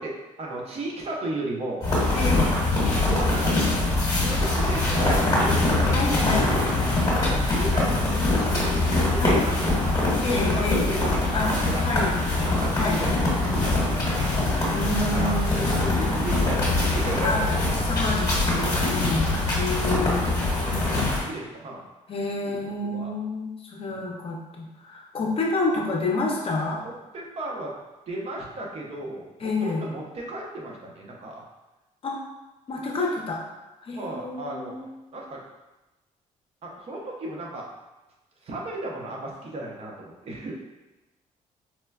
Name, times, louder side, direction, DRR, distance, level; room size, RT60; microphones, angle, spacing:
voice 1, 0.0-1.9 2.9-5.7 6.3-6.6 7.3-10.0 10.3-11.8 12.1-12.2 12.6-14.3 15.0-17.5 20.2-21.9 22.5-23.1 23.8-24.1 25.1-25.4 26.8-27.7 28.1-31.4 33.9-34.7 35.1-35.4 36.6-37.7 38.4-40.5, right 2 dB, 45° right, -2 dB, 0.6 m, -35 dB
sound 1, 1.8-21.2, left 2 dB, 25° left, 1.2 m, -23 dB
voice 2, 2.1-2.5 5.0-5.4 5.9-6.5 9.2-9.5 10.2-10.9 11.3-11.5 11.8-12.2 12.7-13.1 14.7-16.2 17.2-17.4 17.8-20.6 22.1-26.8 29.4-29.9 32.0-32.2 32.7-33.4 33.8-34.9, left 2 dB, 40° left, -1 dB, 0.6 m, -29 dB
4.3 x 2.2 x 2.2 m, 1.1 s
cardioid pair, 110°, 14 cm